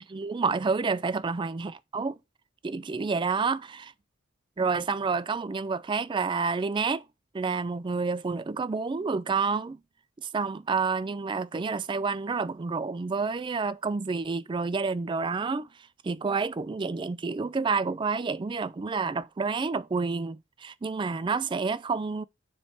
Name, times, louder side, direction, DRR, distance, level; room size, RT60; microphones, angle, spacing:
voice 1, 0.0-2.2 2.6-3.9 4.6-7.0 7.3-9.8 10.2-15.7 16.0-22.2, right 4 dB, 25° right, 0.3 m, -29 dB
7.1 x 3.2 x 5.5 m
head